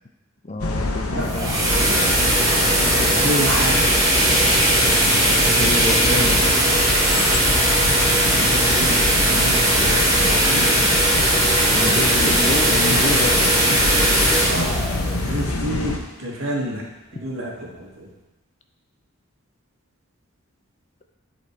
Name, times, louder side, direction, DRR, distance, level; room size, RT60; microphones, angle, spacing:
voice 1, 0.4-1.5 5.4-6.6 11.6-13.8, left 2 dB, 30° left, 5 dB, 0.6 m, -28 dB
sound 1, 0.6-16.0, left 2 dB, 90° left, 0.9 m, -26 dB
sound 2, 1.1-16.0, right 1 dB, 15° right, 1.4 m, -19 dB
voice 2, 1.1-3.8 4.4-4.7 8.2-10.8 11.7-13.1 14.4-16.8 17.1-18.1, equal, 70° right, -2 dB, 1.9 m, -30 dB
11.0 x 4.2 x 4.6 m, 1.0 s
head